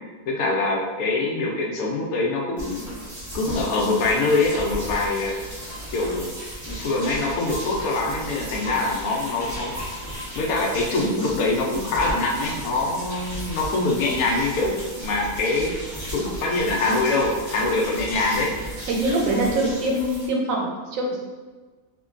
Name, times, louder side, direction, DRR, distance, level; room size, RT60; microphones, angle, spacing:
voice 1, 0.3-2.9 3.3-5.4 5.9-6.3 6.7-9.7 10.3-15.8 16.1-18.5, left 3 dB, 75° left, -1 dB, 1.0 m, -24 dB
sound 1, 2.6-20.3, equal, 20° right, 0.5 m, -35 dB
voice 2, 18.9-21.2, right 1 dB, 70° right, -1 dB, 0.9 m, -24 dB
3.1 x 2.2 x 2.4 m, 1.3 s
omnidirectional pair, 1.6 m